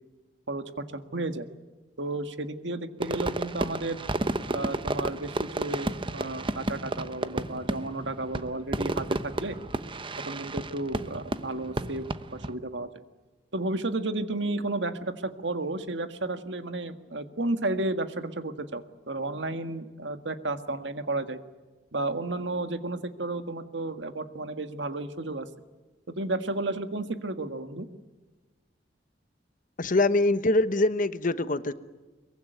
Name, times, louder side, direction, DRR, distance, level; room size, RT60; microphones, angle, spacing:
voice 1, 0.9-1.5 2.0-4.0 4.5-9.6 10.3-12.1 12.3-12.9 13.5-21.4 21.9-25.5 26.1-27.9, right 2 dB, 80° right, 9 dB, 1.7 m, -32 dB
Fireworks, 3.0-12.5, right 2 dB, 30° right, 1.0 m, -32 dB
voice 2, 29.8-31.7, left 2 dB, 50° left, 13 dB, 1.0 m, -24 dB
23.0 x 23.0 x 9.3 m, 1.2 s
head